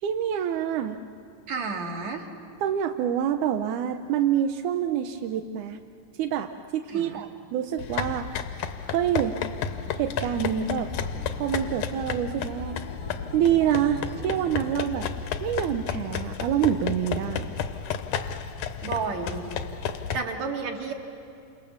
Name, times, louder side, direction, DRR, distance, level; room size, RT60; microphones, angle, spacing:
voice 1, 0.0-1.0 2.6-5.8 6.2-8.4 8.9-9.3 9.9-10.9 11.4-12.8 13.3-15.1 15.4-17.6, right 9 dB, 75° right, 6 dB, 1.9 m, -26 dB
voice 2, 1.5-2.3 6.9-7.2 18.8-19.5 20.1-20.9, right 4 dB, 55° right, 2 dB, 3.2 m, -31 dB
sound 1, 7.8-20.2, left 7 dB, 70° left, 2.4 m, -32 dB
Acoustic guitar, 9.7-14.8, left 1 dB, 20° left, 1.4 m, -43 dB
29.0 x 28.0 x 7.2 m, 2.6 s
omnidirectional pair, 4.1 m